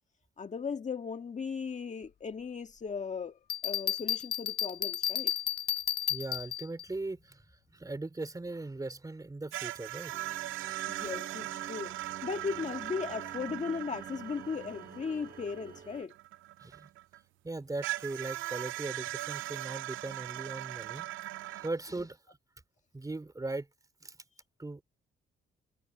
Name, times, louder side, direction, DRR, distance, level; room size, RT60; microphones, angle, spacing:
voice 1, 0.4-5.3 10.9-16.1, left 5 dB, 35° left, 1.9 m, -37 dB
Bell, 3.5-6.8, left 10 dB, 55° left, 1.3 m, -32 dB
voice 2, 6.1-10.2 10.6-11.0 16.6-16.9 17.4-21.1 21.5-22.4 22.9-23.7 24.0-24.2 24.6-24.8, right 2 dB, 15° right, 3.7 m, -39 dB
sound 1, 9.5-17.2 17.8-21.7, right 17 dB, 80° right, 0.4 m, -40 dB
sound 2, 10.1-16.0, right 7 dB, 45° right, 1.5 m, -50 dB
cardioid pair, 90°, 20 cm